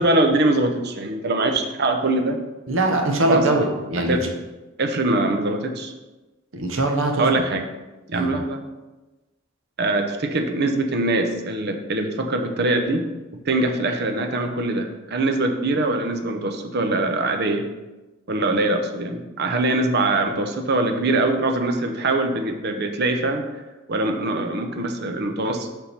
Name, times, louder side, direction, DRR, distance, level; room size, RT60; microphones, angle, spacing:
voice 1, 0.0-2.4 3.3-3.5 4.0-4.3 4.8-5.9 7.2-7.6 8.1-8.6 9.8-13.0 13.5-17.6 18.3-23.5 23.9-25.7, right 2 dB, 55° right, 5 dB, 0.8 m, -23 dB
voice 2, 2.7-4.2 6.5-7.4 8.1-8.3, right 2 dB, 75° right, 3 dB, 1.1 m, -22 dB
7.0 x 3.7 x 5.9 m, 1.1 s
head